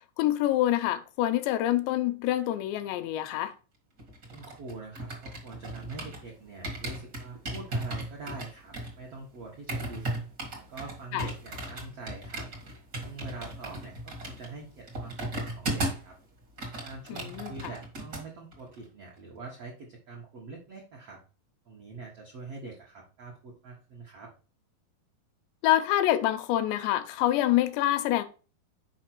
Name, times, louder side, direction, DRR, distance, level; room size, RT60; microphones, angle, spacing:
voice 1, 0.2-3.5 11.1-11.3 17.1-17.7 25.6-28.2, left 13 dB, 80° left, 2.7 m, -26 dB
sound 1, 4.0-6.3 6.6-16.1 16.4-18.2 18.5-18.8, right 1 dB, 50° right, 1.1 m, -36 dB
voice 2, 4.3-10.0 10.7-12.5 13.0-16.2 16.8-21.2 21.6-24.3, right 3 dB, 75° right, 1.4 m, -44 dB
6.4 x 5.1 x 4.5 m
omnidirectional pair, 5.1 m